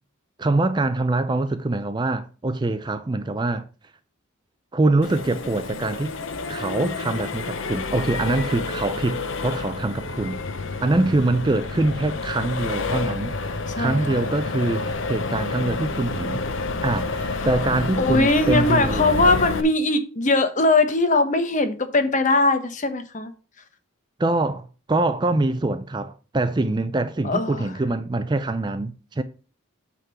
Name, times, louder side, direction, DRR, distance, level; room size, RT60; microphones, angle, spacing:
voice 1, 0.4-3.7 4.7-6.1 6.5-10.4 10.8-13.4 13.8-16.4 16.8-19.4 24.2-29.2, right 2 dB, 20° right, 0.4 m, -24 dB
Accelerating revving vroom, 5.0-19.6, left 3 dB, 65° left, 0.8 m, -29 dB
voice 2, 13.7-14.2 17.4-17.5 18.0-23.3 27.2-27.7, left 2 dB, 35° left, 0.9 m, -20 dB
8.4 x 3.7 x 6.8 m
head